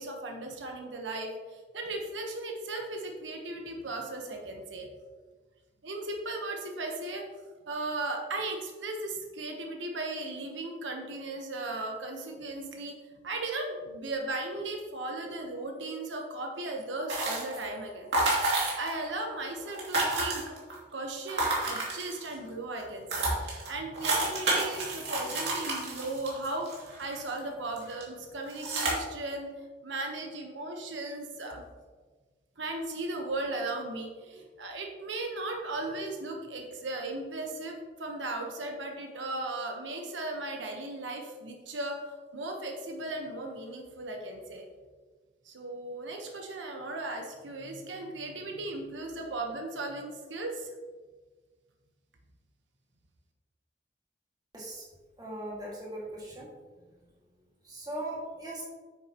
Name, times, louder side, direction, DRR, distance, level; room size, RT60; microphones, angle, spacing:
voice 1, 0.0-4.9 5.8-7.3 7.7-13.0 13.2-20.6 20.9-31.6 32.6-42.0 42.3-44.6 45.4-50.7, right 2 dB, 90° right, 2 dB, 1.2 m, -37 dB
sound 1, 17.1-17.7 18.1-19.1 19.3-19.4 19.6-20.7 21.3-22.3 22.8-22.9 23.1-27.4 27.8-28.0 28.5-28.9, right 2 dB, 65° right, 2.6 m, -30 dB
voice 2, 54.5-54.9 55.2-56.5 57.6-58.6, right 1 dB, 20° right, -5 dB, 2.1 m, -39 dB
9.3 x 7.0 x 3.0 m, 1.4 s
head